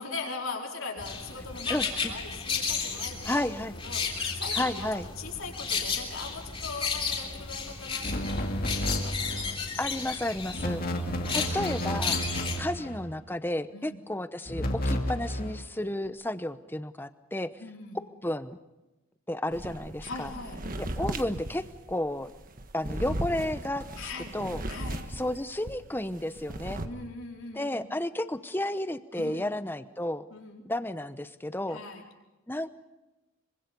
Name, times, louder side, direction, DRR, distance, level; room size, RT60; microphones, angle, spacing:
voice 1, 0.0-4.9 5.2-9.8 10.5-11.0 13.7-14.0 17.6-18.0 20.0-20.6 24.0-24.3 24.7-25.0 26.8-27.9 29.1-29.5 30.3-30.7 31.7-32.0, left 3 dB, 70° left, 0 dB, 4.6 m, -41 dB
sound 1, 1.0-12.6, left 5 dB, 25° left, 3.5 m, -33 dB
voice 2, 1.7-2.1 3.2-3.8 4.5-5.1 9.8-10.8 11.3-12.3 12.6-17.5 17.9-18.6 19.3-20.3 20.8-22.3 22.7-23.8 24.3-24.6 25.1-26.8 27.5-30.2 30.6-31.8 32.5-32.7, left 1 dB, 10° left, 12 dB, 0.8 m, -32 dB
sound 2, 8.0-9.6 10.5-13.1 14.5-15.6, equal, 40° left, 2.6 m, -31 dB
sound 3, 19.5-25.8 26.1-26.9, right 1 dB, 40° right, 1.6 m, -37 dB
25.5 x 24.5 x 5.4 m, 1.0 s
head